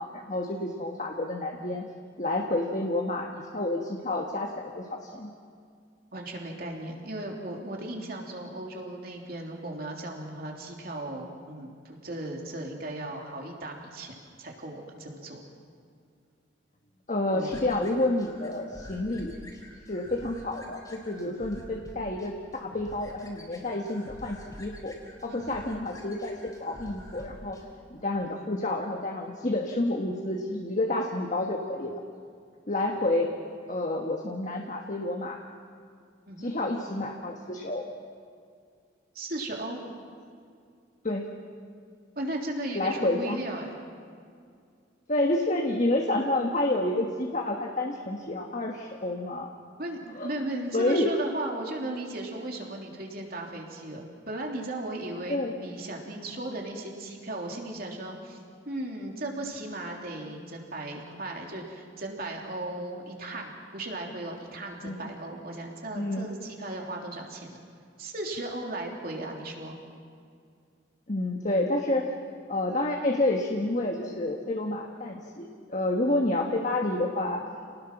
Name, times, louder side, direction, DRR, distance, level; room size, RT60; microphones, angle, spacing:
voice 1, 0.0-1.8 2.2-5.3 17.1-19.4 19.9-24.9 25.2-27.6 27.9-32.0 32.7-33.3 33.7-35.4 36.4-37.8 41.0-41.3 42.7-43.4 45.1-49.5 50.2-50.3 50.7-51.1 55.3-55.5 64.8-65.0 65.9-66.3 71.1-72.1 72.5-77.4, left 2 dB, 40° left, 1 dB, 1.5 m, -29 dB
voice 2, 6.1-15.4 17.3-17.6 21.1-21.3 25.3-25.6 36.3-36.5 39.1-39.8 42.1-43.8 49.8-58.4 58.6-67.6 68.0-69.8, right 1 dB, 50° right, 0 dB, 3.3 m, -36 dB
sound 1, 17.5-27.6, equal, 20° left, 3.8 m, -48 dB
29.0 x 19.5 x 6.1 m, 2.2 s
head